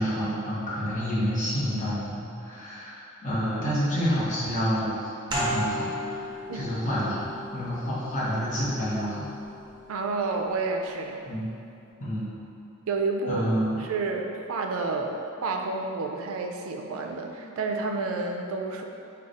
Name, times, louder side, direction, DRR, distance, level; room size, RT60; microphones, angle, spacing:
voice 1, 0.0-5.0 5.3-5.9 6.1-6.3 6.5-7.3 7.5-9.3 11.2-11.5 12.0-12.3 13.3-13.8, equal, 35° left, -9 dB, 1.1 m, -28 dB
sound 1, 5.3-10.6, equal, 20° right, 0.7 m, -36 dB
voice 2, 9.9-11.2 12.9-13.4 13.8-18.8, right 3 dB, 65° right, 3 dB, 0.4 m, -30 dB
4.8 x 2.3 x 3.9 m, 2.7 s
head